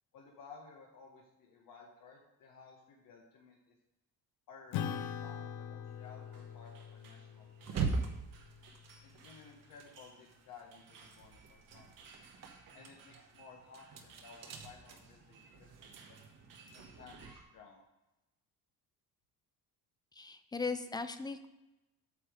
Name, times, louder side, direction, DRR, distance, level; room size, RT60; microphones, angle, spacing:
voice 1, 0.1-3.6 4.5-7.9 9.0-12.1 12.7-16.2 16.7-17.8, left 5 dB, 55° left, -1 dB, 1.5 m, -56 dB
Acoustic guitar / Strum, 4.7-9.5, left 8 dB, 75° left, 0.8 m, -43 dB
sound 1, 5.9-17.4, right 4 dB, 55° right, 1.9 m, -60 dB
sound 2, 7.6-10.6 10.9-17.3, right 4 dB, 40° right, 1.2 m, -42 dB
voice 2, 20.1-21.5, left 4 dB, 10° left, 10 dB, 0.3 m, -38 dB
8.6 x 6.9 x 5.1 m, 0.98 s
cardioid pair, 160°, 39 cm